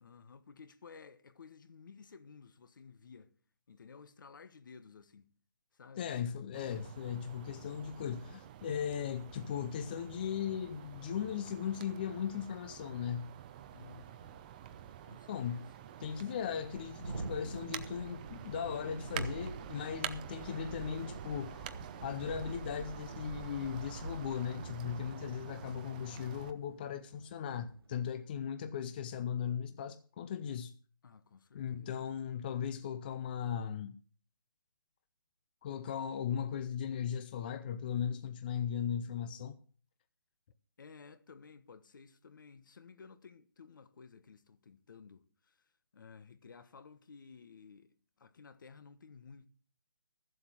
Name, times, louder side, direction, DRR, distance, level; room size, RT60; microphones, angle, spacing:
voice 1, 0.0-3.3 3.7-5.3 5.7-6.1 13.7-14.5 15.0-15.7 31.0-32.1 40.8-49.5, left 5 dB, 60° left, 1.2 m, -55 dB
voice 2, 6.0-13.3 15.3-15.6 16.0-30.7 31.5-34.0 35.6-39.6, left 8 dB, 25° left, 0.5 m, -38 dB
sound 1, 6.5-26.5, right 10 dB, 20° right, 0.6 m, -48 dB
Thunderstorm, 14.0-14.1 14.4-28.0, right 2 dB, 90° right, 1.4 m, -47 dB
14.5 x 7.8 x 6.2 m
hypercardioid pair, 165°, 12 cm